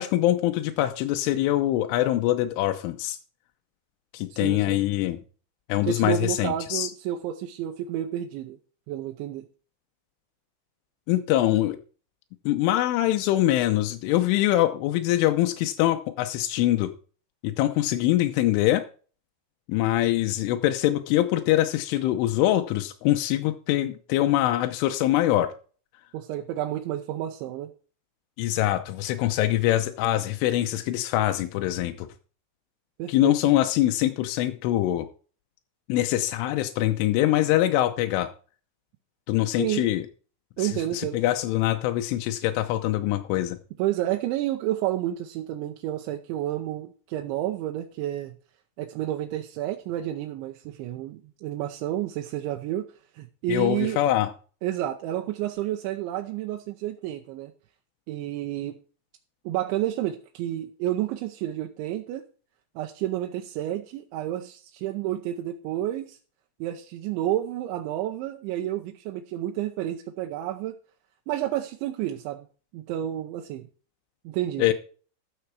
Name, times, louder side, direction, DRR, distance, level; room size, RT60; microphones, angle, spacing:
voice 1, 0.0-3.2 4.1-5.2 5.7-6.9 11.1-11.8 12.5-16.9 17.4-18.8 19.7-25.5 28.4-32.1 33.1-35.1 35.9-38.3 39.3-40.0 40.6-43.6 53.5-54.3 74.6-74.7, left 14 dB, 85° left, 7 dB, 3.4 m, -24 dB
voice 2, 4.3-4.8 5.8-8.6 8.9-9.4 26.1-27.7 33.0-33.4 39.5-39.9 40.6-41.2 43.8-48.3 48.8-52.8 53.1-54.0 54.6-57.5 58.1-58.7 59.5-62.2 62.8-66.2 66.6-70.8 71.3-72.5 72.7-73.7 74.2-74.7, right 13 dB, 80° right, 3 dB, 3.1 m, -30 dB
13.5 x 7.1 x 4.7 m, 0.38 s
omnidirectional pair, 5.5 m